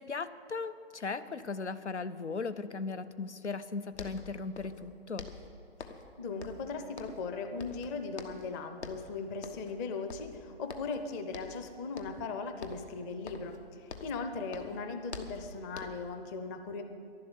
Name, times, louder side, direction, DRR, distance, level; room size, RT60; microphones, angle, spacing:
voice 1, 0.0-5.3 14.0-14.1, left 4 dB, 90° left, 13 dB, 0.8 m, -37 dB
sound 1, 3.6-3.7 3.9-4.9 5.2-6.1 6.4-7.3 7.6-8.5 8.8-9.1 9.4-9.8 10.1-11.0 11.3-11.6 12.0-12.3 12.6-14.2 14.5-16.1, left 4 dB, 75° left, 1.3 m, -46 dB
voice 2, 6.2-16.8, left 4 dB, 15° left, 7 dB, 0.6 m, -38 dB
11.5 x 11.5 x 8.4 m, 2.4 s
figure-of-eight pair, 130°, 33 cm